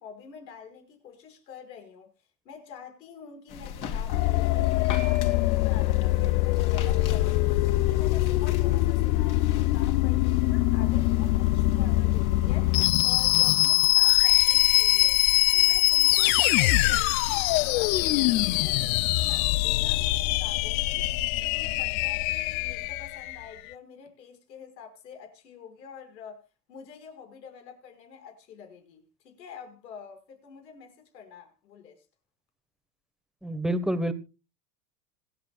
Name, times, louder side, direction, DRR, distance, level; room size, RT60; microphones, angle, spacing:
voice 1, 0.0-2.1 2.4-7.4 7.7-15.2 15.5-21.1 21.4-32.0, left 7 dB, 85° left, 5.9 m, -47 dB
sound 1, 3.5-12.9, left 7 dB, 40° left, 3.1 m, -38 dB
sound 2, 4.1-23.4, left 19 dB, 55° left, 0.6 m, -23 dB
voice 2, 33.4-34.1, right 1 dB, ahead, 1.4 m, -27 dB
27.0 x 9.0 x 2.4 m
supercardioid pair, 120°, 49 cm